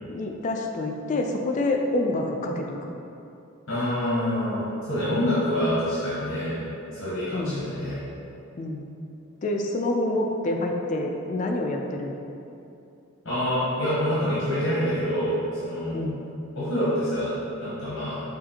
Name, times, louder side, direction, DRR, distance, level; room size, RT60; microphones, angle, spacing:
voice 1, 0.1-2.9 7.3-7.6 8.6-8.9 9.4-12.2 15.9-16.2, left 2 dB, 35° left, 2 dB, 0.3 m, -27 dB
voice 2, 3.7-6.6 6.9-8.0 13.2-15.3 15.6-16.0 16.6-18.2, equal, 60° left, -10 dB, 1.0 m, -26 dB
6.1 x 2.5 x 2.8 m, 2.7 s
head